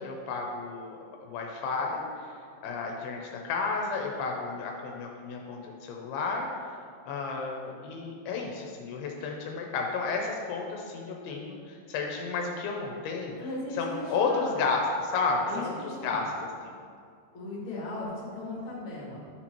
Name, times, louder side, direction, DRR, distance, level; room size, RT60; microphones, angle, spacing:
voice 1, 0.0-2.1 2.6-6.5 7.1-13.4 13.7-16.8, left 4 dB, 80° left, 0 dB, 2.7 m, -32 dB
voice 2, 13.4-14.6 15.5-16.2 17.3-19.3, left 2 dB, 40° left, -5 dB, 2.0 m, -37 dB
11.5 x 4.3 x 4.5 m, 2.2 s
omnidirectional pair, 4.8 m